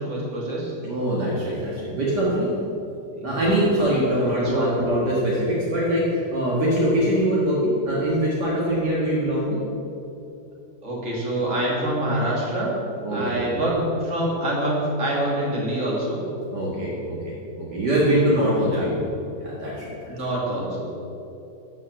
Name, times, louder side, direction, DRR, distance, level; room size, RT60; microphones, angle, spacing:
voice 1, 0.0-0.7 3.2-3.4 4.2-4.7 10.8-12.7 13.1-16.2 18.6-18.8 20.1-20.9, right 1 dB, 45° right, -4 dB, 2.9 m, -26 dB
voice 2, 0.8-2.5 3.2-9.6 13.0-13.6 16.5-19.1 19.4-19.9, right 1 dB, 65° right, -6 dB, 2.3 m, -23 dB
12.5 x 5.7 x 7.5 m, 2.9 s
omnidirectional pair, 2.0 m